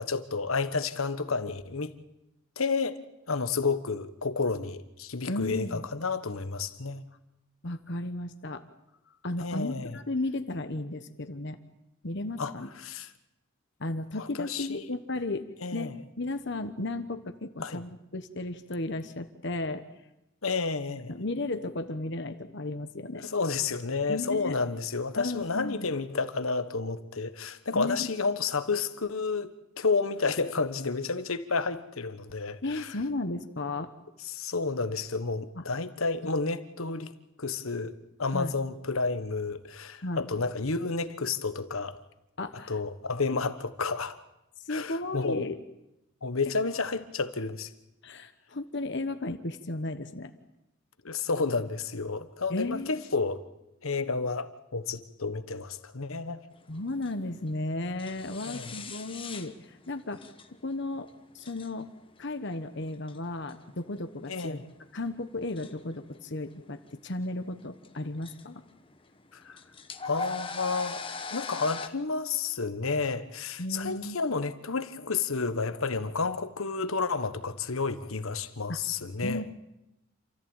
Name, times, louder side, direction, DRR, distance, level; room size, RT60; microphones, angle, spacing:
voice 1, 0.0-1.9 2.6-3.0 3.3-7.0 9.4-10.0 12.4-12.5 12.8-13.1 14.2-14.8 15.6-15.9 17.6-17.8 20.4-21.2 23.1-29.5 29.8-33.0 34.2-37.1 37.4-42.0 42.7-44.2 44.7-45.5 46.2-47.7 51.0-53.4 53.8-56.5 58.4-58.8 64.3-64.6 69.3-69.6 70.0-71.0 71.3-79.4, left 4 dB, 85° left, 1.3 m, -31 dB
voice 2, 5.3-5.9 7.6-8.6 9.2-11.6 12.0-12.7 13.8-15.4 15.7-19.8 21.1-23.3 24.1-24.6 25.2-25.9 27.7-28.1 32.6-33.9 35.5-35.6 38.3-38.5 40.0-40.3 42.4-42.8 43.3-43.4 43.8-43.9 44.7-45.6 48.0-50.3 52.5-53.0 56.7-59.5 59.9-60.2 60.6-61.1 61.3-61.9 62.2-64.6 64.9-68.6 73.6-74.2 78.7-78.8 79.2-79.5, left 2 dB, 55° left, 1.2 m, -34 dB
sound 1, 56.6-71.9, left 4 dB, 25° left, 1.2 m, -41 dB
28.0 x 14.5 x 9.0 m
head